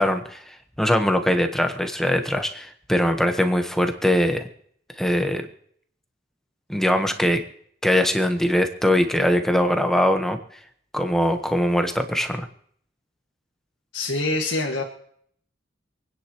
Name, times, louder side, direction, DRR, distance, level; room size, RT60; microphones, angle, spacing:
voice 1, 0.0-4.5 5.0-5.4 6.7-7.4 7.8-10.4 10.9-12.5, left 1 dB, ahead, 5 dB, 1.2 m, -21 dB
voice 2, 13.9-14.8, left 2 dB, 85° left, 0 dB, 1.9 m, -25 dB
27.5 x 10.0 x 3.1 m, 0.64 s
head